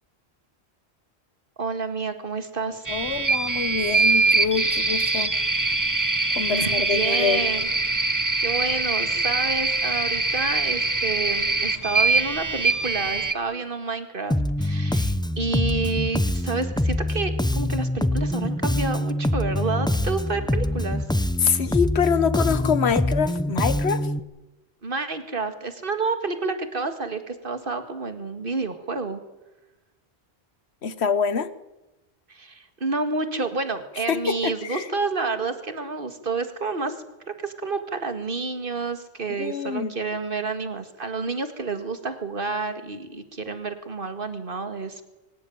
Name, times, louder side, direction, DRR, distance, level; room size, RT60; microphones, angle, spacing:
voice 1, 1.6-2.9 6.5-7.7 8.0-21.0 24.8-29.2 32.3-37.0 37.3-45.0, right 4 dB, 55° right, 9 dB, 2.2 m, -29 dB
voice 2, 2.9-5.3 6.3-7.4 21.4-24.1 30.8-31.5 34.1-34.9 39.4-39.9, left 6 dB, 75° left, 14 dB, 1.4 m, -25 dB
sound 1, 2.9-13.3, right 3 dB, 20° right, 1.0 m, -23 dB
Bass guitar, 14.3-24.2, left 1 dB, 5° left, 0.5 m, -25 dB
24.5 x 17.0 x 9.4 m, 1.0 s
omnidirectional pair, 1.1 m